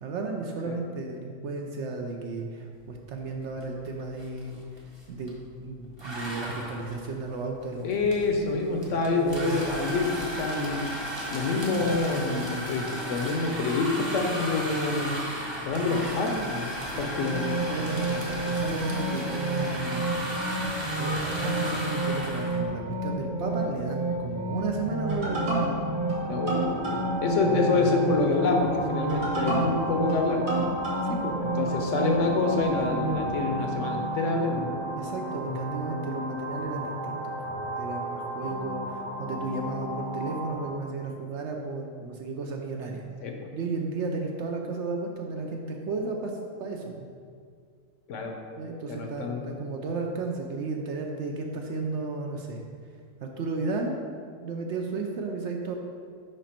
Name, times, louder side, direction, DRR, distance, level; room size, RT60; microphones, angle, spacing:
voice 1, 0.0-5.3 5.6-7.9 8.7-8.8 9.1-10.0 16.9-17.3 17.7-20.1 21.0-25.8 31.1-31.8 33.9-34.1 35.0-43.1 43.5-47.1 48.6-52.6 53.2-54.0 54.4-55.8, right 3 dB, 65° right, 1 dB, 0.8 m, -34 dB
sound 1, 3.6-3.9 4.1-5.4 6.0-22.6, equal, 25° right, 0.8 m, -35 dB
voice 2, 7.8-10.8 11.3-15.1 15.6-17.5 26.3-30.6 31.6-34.7 43.2-43.3 48.1-48.4 48.9-49.5, left 3 dB, 70° left, 2 dB, 1.0 m, -27 dB
sound 2, 17.1-33.2, right 2 dB, 85° right, 1.8 m, -30 dB
sound 3, 25.0-40.7, equal, 85° left, 1.6 m, -34 dB
5.1 x 5.1 x 4.3 m, 2.2 s
omnidirectional pair, 1.4 m